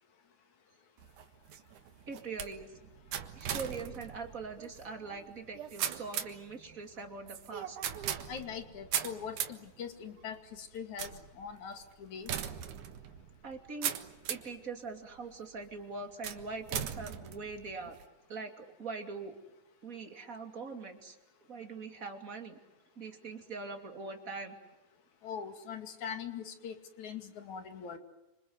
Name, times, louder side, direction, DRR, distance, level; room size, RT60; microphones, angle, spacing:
sound 1, 1.0-14.6 15.2-15.6 16.2-18.1, right 9 dB, 85° right, 3.0 m, -40 dB
voice 1, 2.1-2.9 3.3-7.8 13.4-14.0 14.3-18.0 18.3-19.3 19.8-21.2 21.5-22.6 23.0-24.6, right 4 dB, 25° right, 5 dB, 3.0 m, -42 dB
voice 2, 8.3-12.3 25.2-28.0, left 7 dB, 70° left, 7 dB, 3.8 m, -42 dB
28.5 x 26.5 x 8.0 m, 0.99 s
omnidirectional pair, 3.5 m